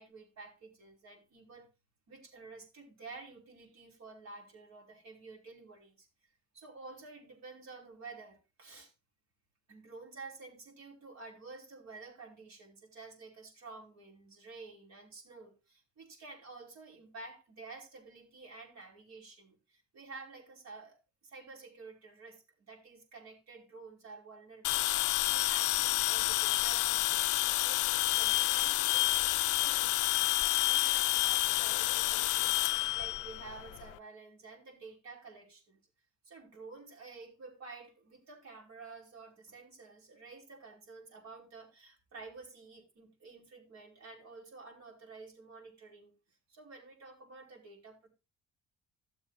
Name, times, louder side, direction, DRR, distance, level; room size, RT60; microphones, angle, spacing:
voice 1, 0.0-1.7 2.1-6.1 6.5-8.9 9.7-30.2 30.6-35.8 36.2-46.2 46.5-48.1, right 3 dB, 60° right, 0 dB, 5.1 m, -51 dB
sound 1, 24.6-33.9, left 17 dB, 90° left, 0.5 m, -29 dB
16.5 x 7.2 x 2.6 m, 0.27 s
cardioid pair, 90°, 30 cm